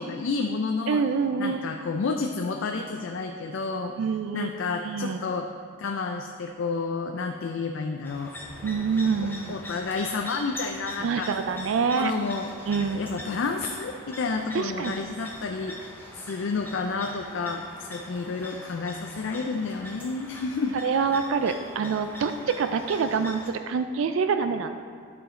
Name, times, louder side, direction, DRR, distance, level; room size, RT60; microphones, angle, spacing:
voice 1, 0.0-1.0 1.4-3.9 4.3-5.5 5.8-8.3 9.2-11.3 11.9-12.5 12.8-15.9 16.2-20.8, left 4 dB, 60° left, 4 dB, 0.4 m, -30 dB
voice 2, 0.9-1.7 4.0-4.5 4.8-5.2 8.6-9.6 11.0-12.1 12.7-13.2 14.5-15.0 20.8-24.8, right 5 dB, 65° right, 9 dB, 0.3 m, -26 dB
sound 1, 8.0-23.5, left 1 dB, 10° left, 0.6 m, -42 dB
Thunder / Rain, 8.4-18.4, equal, 40° left, 1.5 m, -53 dB
12.0 x 5.1 x 3.7 m, 2.1 s
head